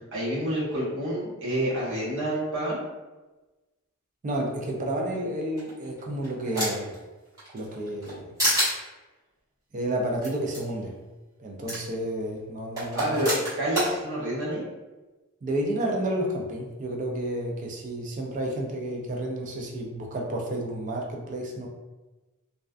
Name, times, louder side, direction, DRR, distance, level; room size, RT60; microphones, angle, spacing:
voice 1, 0.0-2.8 12.9-14.6, right 1 dB, 60° right, -8 dB, 1.0 m, -28 dB
voice 2, 4.2-7.0 7.5-8.3 9.7-11.0 11.4-13.1 15.4-21.7, right 1 dB, 35° right, 0 dB, 0.4 m, -31 dB
sound 1, 5.6-6.9 7.4-8.1 8.4-8.7 10.2-10.3 10.5-10.6 11.7-11.8 12.8-13.9, equal, 15° right, 1.1 m, -27 dB
2.3 x 2.2 x 2.4 m, 1.2 s
head